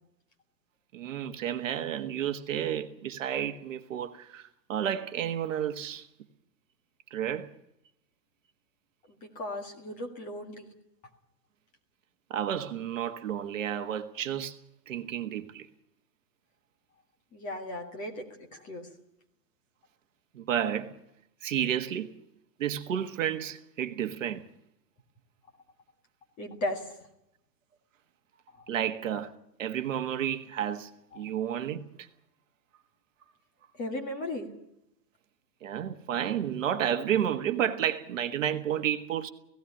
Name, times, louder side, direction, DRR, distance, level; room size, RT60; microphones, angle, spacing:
voice 1, 0.9-6.1 7.1-7.5 12.3-14.6 14.9-15.7 20.3-20.9 21.4-22.1 22.6-24.5 28.7-29.3 29.6-32.1 35.6-39.3, right 10 dB, 50° right, 1.6 m, -31 dB
voice 2, 9.1-10.7 17.3-18.9 26.4-26.8 28.5-28.6 33.8-34.5, left 1 dB, 15° left, 1.8 m, -36 dB
17.0 x 16.5 x 10.0 m
hypercardioid pair, 170°, 50 cm